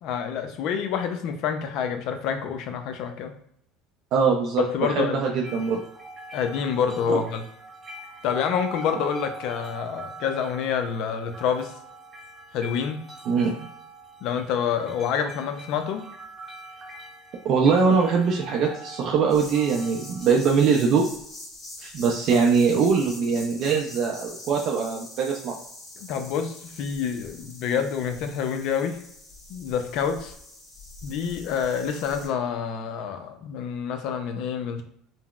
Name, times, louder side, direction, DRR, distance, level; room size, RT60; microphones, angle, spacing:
voice 1, 0.0-3.3 4.6-5.2 6.3-7.4 8.2-11.7 12.5-13.0 14.2-16.1 22.3-22.5 26.0-29.0 29.5-30.3 31.0-34.8, left 7 dB, 60° left, 7 dB, 0.5 m, -27 dB
voice 2, 4.1-5.8 7.1-7.2 13.3-13.7 17.4-21.1 21.8-25.6, right 5 dB, 55° right, 0 dB, 0.4 m, -22 dB
sound 1, 5.4-20.5, right 1 dB, 25° right, 0.8 m, -43 dB
sound 2, 19.3-32.3, left 2 dB, 30° left, 1.2 m, -44 dB
3.8 x 2.1 x 2.3 m, 0.70 s
supercardioid pair, 115°, 0 cm